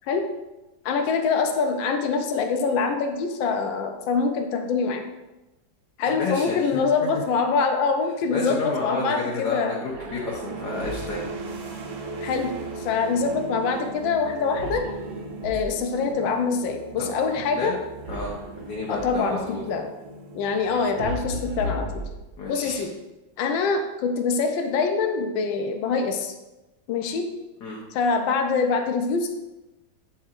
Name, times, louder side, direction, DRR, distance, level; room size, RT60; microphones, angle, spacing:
voice 1, 0.8-5.0 6.0-9.8 12.2-12.5 12.8-14.8 15.4-17.8 18.9-19.4 19.7-19.9 20.3-22.1 22.5-22.9 23.4-26.3 26.9-27.3 27.9-29.3, left 5 dB, 80° left, 5 dB, 1.4 m, -24 dB
voice 2, 6.2-6.8 8.3-11.3 17.0-17.1 17.5-17.7 18.1-19.6 22.4-22.8 27.6-27.8, left 3 dB, 60° left, -4 dB, 1.5 m, -30 dB
sound 1, 9.8-11.4 14.5-16.1 18.0-19.3 21.0-22.7, equal, 65° right, 1.2 m, -35 dB
sound 2, 10.1-21.6, right 3 dB, 80° right, 1.6 m, -38 dB
7.9 x 5.6 x 2.5 m, 1.0 s
omnidirectional pair, 2.1 m